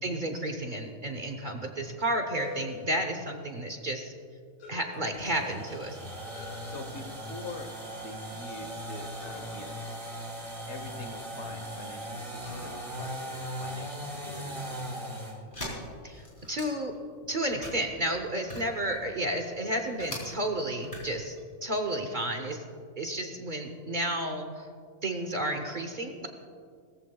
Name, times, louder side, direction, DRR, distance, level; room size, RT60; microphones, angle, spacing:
voice 1, 0.0-4.1 4.7-6.0 16.0-16.9 17.3-21.3 21.6-22.6 23.0-24.7 25.0-26.3, right 1 dB, 40° right, 4 dB, 0.9 m, -32 dB
sound 1, 2.3-3.8 4.6-5.8 6.3-7.6 9.2-11.3 12.4-13.0, left 6 dB, 80° left, 1.8 m, -48 dB
voice 2, 4.9-5.6 6.6-9.8 10.7-14.9, left 2 dB, 55° left, 5 dB, 1.3 m, -44 dB
sound 2, 5.1-15.4, right 1 dB, 75° right, 3.5 m, -39 dB
sound 3, 15.5-17.0 17.4-20.2 20.7-21.4, equal, 35° left, 3.3 m, -41 dB
19.5 x 14.0 x 2.3 m, 2.2 s
omnidirectional pair, 1.4 m